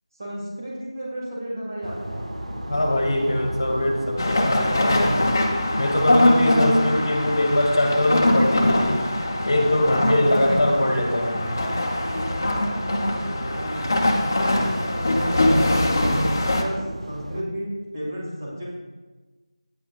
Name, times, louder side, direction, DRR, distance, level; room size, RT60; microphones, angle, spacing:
voice 1, 0.2-2.2 5.6-6.9 10.2-10.5 13.1-14.0 14.3-18.7, equal, 30° right, -5 dB, 1.7 m, -34 dB
sound 1, 1.8-17.4, right 1 dB, 75° right, 1.0 m, -34 dB
voice 2, 2.7-5.3 5.8-9.0 9.4-11.5, left 1 dB, 45° left, 2 dB, 1.2 m, -22 dB
sound 2, 4.2-16.6, left 1 dB, 30° left, 0.7 m, -22 dB
8.6 x 8.6 x 2.3 m, 1.3 s
figure-of-eight pair, 175°, 3 cm